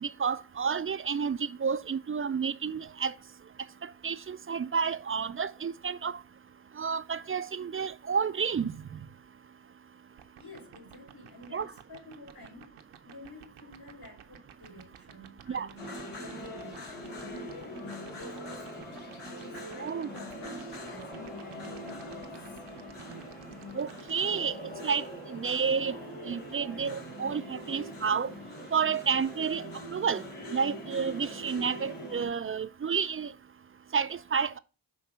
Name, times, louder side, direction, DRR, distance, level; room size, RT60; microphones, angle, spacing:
voice 1, 0.0-3.1 4.0-6.1 6.8-9.0 11.5-11.7 15.5-15.7 19.8-20.1 23.8-24.5 24.8-26.0 26.3-28.3 28.7-29.6 29.9-30.2 30.5-33.3 33.9-34.6, right 6 dB, 30° right, 0.4 m, -30 dB
sound 1, 10.2-24.5, right 10 dB, 80° right, 0.8 m, -51 dB
voice 2, 10.4-12.8 13.0-17.9 18.1-19.0 19.4-22.6, left 1 dB, 50° left, 4.2 m, -51 dB
sound 2, 15.8-32.3, equal, 75° left, 3.1 m, -42 dB
6.2 x 3.2 x 5.8 m
cardioid pair, 45°, 49 cm